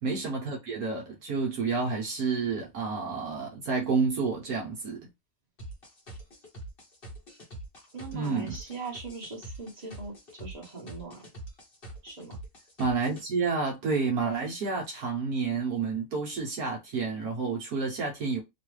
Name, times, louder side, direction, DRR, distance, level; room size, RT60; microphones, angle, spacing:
voice 1, 0.0-5.1 8.1-8.6 12.8-18.4, right 4 dB, 65° right, 1.3 m, -30 dB
sound 1, 5.6-13.2, right 1 dB, 40° left, 1.0 m, -44 dB
voice 2, 7.9-11.2 12.0-12.4, right 4 dB, 25° right, 1.2 m, -40 dB
3.2 x 2.4 x 3.1 m
omnidirectional pair, 1.8 m